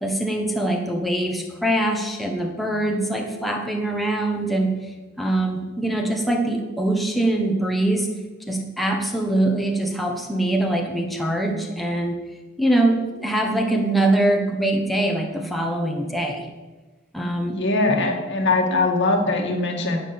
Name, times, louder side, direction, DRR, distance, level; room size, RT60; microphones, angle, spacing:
voice 1, 0.0-4.8 5.2-8.1 8.5-12.2 12.6-16.5 17.1-17.6, right 1 dB, ahead, 0 dB, 1.3 m, -23 dB
voice 2, 17.5-20.0, left 2 dB, 60° left, 2 dB, 2.1 m, -21 dB
12.0 x 8.3 x 7.1 m, 1.2 s
head